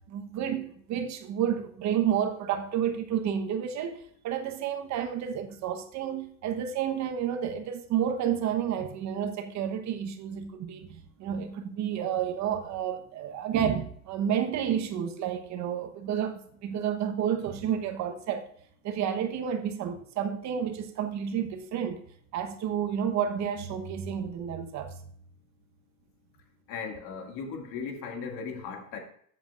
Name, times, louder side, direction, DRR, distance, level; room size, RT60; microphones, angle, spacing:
voice 1, 0.1-18.5 18.8-22.0 22.3-25.0, right 9 dB, 45° right, 1.1 m, -30 dB
voice 2, 26.7-29.0, left 5 dB, 50° left, 2.2 m, -37 dB
14.0 x 8.0 x 2.5 m
supercardioid pair, 105°, 41 cm